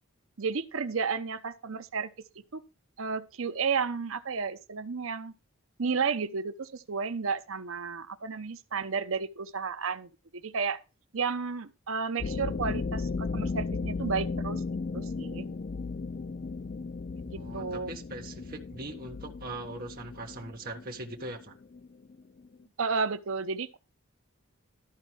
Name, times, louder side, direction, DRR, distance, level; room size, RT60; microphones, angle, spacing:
voice 1, 0.4-2.1 2.5-2.6 3.0-5.3 5.8-10.8 11.1-14.6 14.9-15.5 17.3-17.9 22.8-23.8, right 5 dB, 70° right, 0.8 m, -32 dB
sound 1, 12.2-22.5, left 4 dB, 40° left, 0.4 m, -35 dB
voice 2, 17.3-21.6, right 2 dB, 45° right, 1.5 m, -41 dB
13.0 x 4.5 x 6.2 m
head